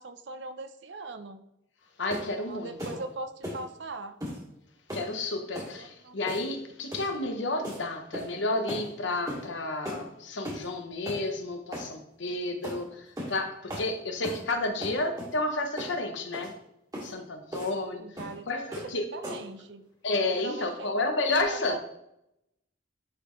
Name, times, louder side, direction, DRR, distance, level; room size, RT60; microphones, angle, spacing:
voice 1, 0.0-1.4 2.4-4.2 5.6-6.2 18.0-19.8 20.3-21.0 21.5-21.8, right 3 dB, 70° right, 10 dB, 0.6 m, -40 dB
voice 2, 2.0-2.8 4.9-16.5 17.0-18.1 18.5-19.1 20.0-21.8, left 2 dB, 80° left, 5 dB, 1.0 m, -31 dB
sound 1, 2.1-2.3 2.8-3.0 3.4-3.6 4.2-4.4 4.9-5.1 5.5-5.7 6.3-6.6 6.9-7.1 7.6-7.8 8.1-8.4 8.7-8.9 9.3-9.5 9.8-10.0 10.4-10.7 11.0-11.2 11.7-11.9 12.6-12.8 13.2-13.4 13.7-13.9 14.2-14.4 14.8-15.4 15.8-16.0 16.3-16.5 16.9-17.1 17.5-17.7 18.2-18.4 18.7-18.9 19.2-19.5, equal, 20° right, 2.4 m, -37 dB
10.5 x 4.2 x 3.1 m, 0.81 s
head